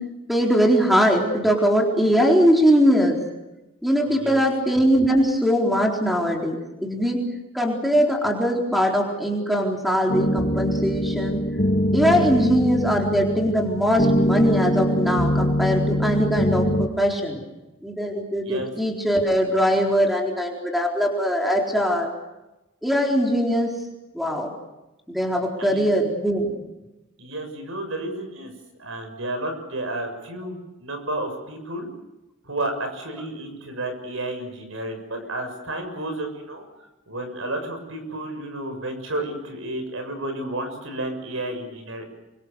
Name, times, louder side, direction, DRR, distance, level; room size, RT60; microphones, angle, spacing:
voice 1, 0.3-3.2 3.8-7.2 7.5-11.4 11.9-17.4 17.8-22.1 22.8-23.7 24.1-24.5 25.1-26.6, equal, ahead, 0 dB, 4.0 m, -21 dB
voice 2, 4.0-4.4 18.4-18.7 25.6-25.9 27.2-28.5 28.8-31.9 32.4-42.0, right 1 dB, 75° right, 6 dB, 6.7 m, -31 dB
sound 1, 10.1-16.9, equal, 40° left, 2.0 m, -23 dB
28.0 x 24.0 x 6.8 m, 1.0 s
head